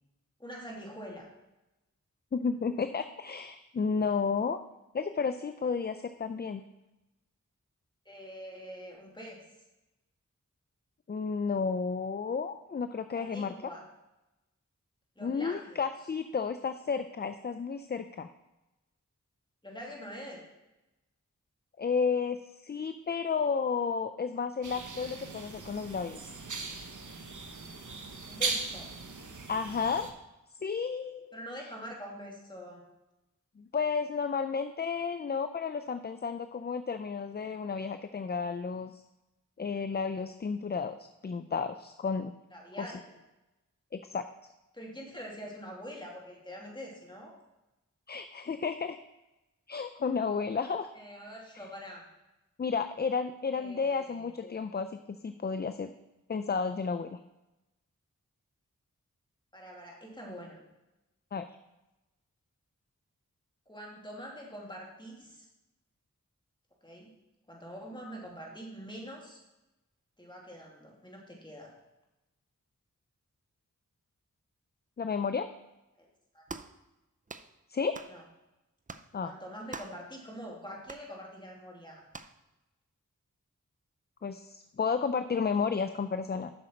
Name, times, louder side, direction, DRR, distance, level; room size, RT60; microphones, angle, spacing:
voice 1, 0.4-1.3 8.1-9.4 13.1-13.8 15.2-15.9 19.6-20.4 28.2-28.9 31.3-32.9 42.5-43.1 44.7-47.4 50.9-52.1 53.5-54.3 59.5-60.6 63.7-65.5 66.8-67.1 67.5-69.4 70.2-71.7 76.0-76.1 76.3-76.4 78.1-78.2 79.2-82.1, equal, 15° left, -2 dB, 2.4 m, -45 dB
voice 2, 2.3-4.6 4.9-6.7 11.1-13.5 15.2-18.3 21.8-26.3 29.5-30.1 30.6-31.4 33.6-39.0 39.6-42.3 42.8-42.9 43.9-44.2 48.1-49.0 49.7-50.9 52.6-55.9 56.3-57.2 61.3-61.5 75.0-75.5 77.7-78.0 79.1-79.3 84.2-86.5, left 5 dB, 30° left, 10 dB, 0.4 m, -32 dB
sound 1, 24.6-30.1, right 4 dB, 65° right, 1.0 m, -38 dB
sound 2, 76.5-76.8 77.3-77.5 77.9-78.2 78.9-79.1 79.7-80.0 80.9-81.1 82.1-82.4, right 3 dB, 25° right, 0.5 m, -44 dB
8.0 x 6.2 x 4.4 m, 1.0 s
cardioid pair, 40°, 33 cm